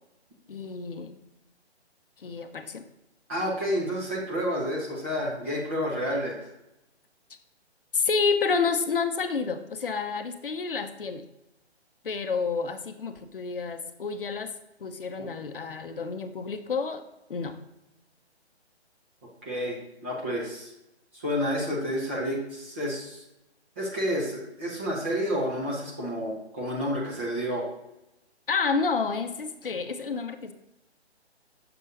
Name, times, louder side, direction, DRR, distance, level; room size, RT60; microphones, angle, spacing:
voice 1, 0.5-1.2 2.2-2.8 7.9-11.2 12.0-14.5 14.8-17.0 17.3-17.6 28.5-30.5, left 5 dB, 55° left, 8 dB, 0.6 m, -29 dB
voice 2, 3.3-6.4 15.2-15.3 19.4-20.7 21.1-23.2 23.8-27.7, equal, 10° right, -5 dB, 0.6 m, -30 dB
6.7 x 6.1 x 2.6 m, 0.90 s
figure-of-eight pair, 140°, 33 cm